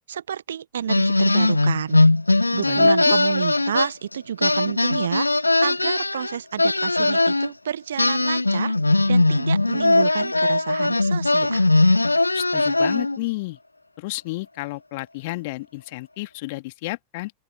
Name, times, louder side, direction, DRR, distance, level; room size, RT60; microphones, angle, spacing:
voice 1, 0.1-2.0 2.5-5.3 5.6-8.7 9.1-11.7, right 9 dB, 65° right, 1.5 m, -29 dB
sound 1, 0.9-4.1 4.4-7.5 8.0-13.2, left 2 dB, 85° left, 0.3 m, -20 dB
voice 2, 2.7-3.1 12.3-13.6 14.0-17.3, left 22 dB, 50° left, 2.5 m, -31 dB
open air
figure-of-eight pair, 90°, 0 cm